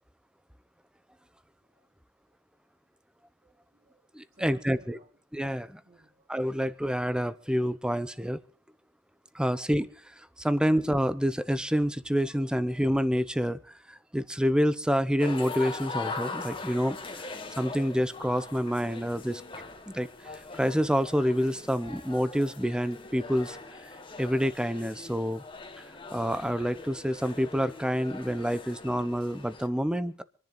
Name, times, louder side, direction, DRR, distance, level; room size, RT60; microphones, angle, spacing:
voice 1, 1.6-1.9 2.8-2.9 3.4-5.1 5.9-6.3 10.4-10.5, right 2 dB, 50° right, -2 dB, 3.8 m, -59 dB
voice 2, 4.1-5.0 5.3-5.8 6.3-8.4 9.3-9.9 10.2-19.4 19.9-23.6 24.2-25.4 25.8-25.9 26.1-30.2, equal, 5° right, 13 dB, 0.8 m, -28 dB
sound 1, 15.2-29.7, left 3 dB, 25° left, 1.6 m, -41 dB
26.5 x 10.5 x 4.0 m, 0.43 s
head